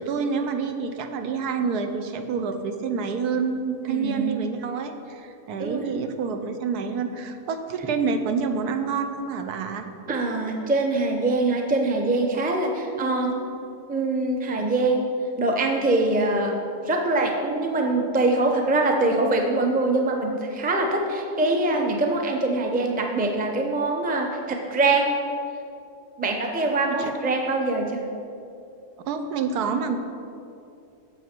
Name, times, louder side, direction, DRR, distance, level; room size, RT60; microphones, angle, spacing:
voice 1, 0.0-9.9 27.0-27.1 29.1-30.0, right 5 dB, 85° right, 7 dB, 1.3 m, -28 dB
voice 2, 3.9-4.4 5.6-5.8 10.1-13.4 13.9-15.1 15.4-16.6 16.9-25.1 26.2-28.0, right 2 dB, 10° right, 2 dB, 0.4 m, -23 dB
10.5 x 7.2 x 4.4 m, 2.6 s
omnidirectional pair, 1.6 m